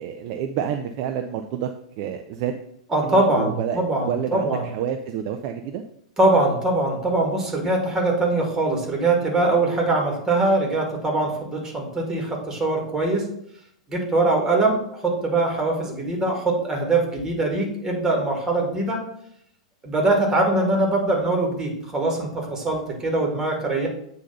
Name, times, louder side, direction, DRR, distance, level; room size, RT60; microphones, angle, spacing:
voice 1, 0.0-1.7 2.0-2.5 3.0-5.8, right 9 dB, 40° right, 5 dB, 0.4 m, -28 dB
voice 2, 2.9-4.6 6.2-13.3 13.9-19.0 19.8-23.9, right 2 dB, 15° right, 1 dB, 1.8 m, -22 dB
8.1 x 2.7 x 5.4 m, 0.72 s
figure-of-eight pair, 95°, 3 cm